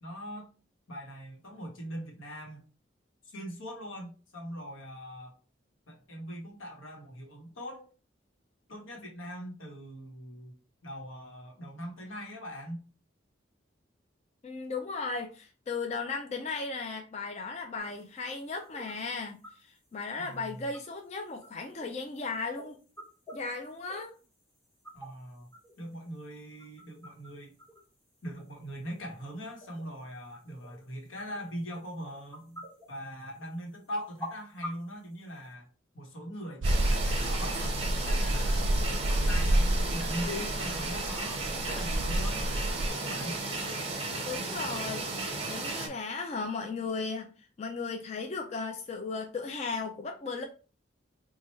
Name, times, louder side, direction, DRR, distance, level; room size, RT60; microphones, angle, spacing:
voice 1, 0.0-0.5 0.9-2.6 3.2-5.4 5.9-7.9 8.7-10.6 10.8-12.8 20.1-20.6 24.9-25.5 25.8-27.5 28.2-35.7 35.9-37.7 38.0-38.7 39.1-42.5 42.9-43.4, equal, 85° left, 1.1 m, -41 dB
voice 2, 14.4-22.8 23.3-24.1 44.3-47.3 47.6-50.4, left 4 dB, 35° left, 0.3 m, -36 dB
sound 1, 17.8-35.5, equal, 15° left, 1.2 m, -50 dB
sound 2, 36.6-45.9, right 3 dB, 30° right, 0.7 m, -34 dB
sound 3, 36.6-42.9, right 1 dB, 70° right, 0.4 m, -29 dB
4.2 x 2.2 x 3.1 m
head